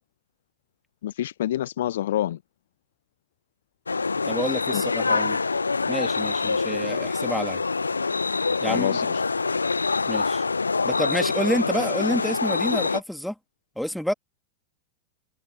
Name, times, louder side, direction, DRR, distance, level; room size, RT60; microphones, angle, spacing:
voice 1, 1.0-2.4 4.7-4.8 8.7-9.2, left 12 dB, 60° left, 0.5 m, -27 dB
sound 1, 3.9-13.0, left 4 dB, 80° left, 1.6 m, -25 dB
voice 2, 4.2-5.4 5.9-7.6 8.6-9.0 10.1-10.4 10.8-13.3 13.8-14.1, equal, ahead, 2.8 m, -28 dB
open air
figure-of-eight pair, 90°, 0 cm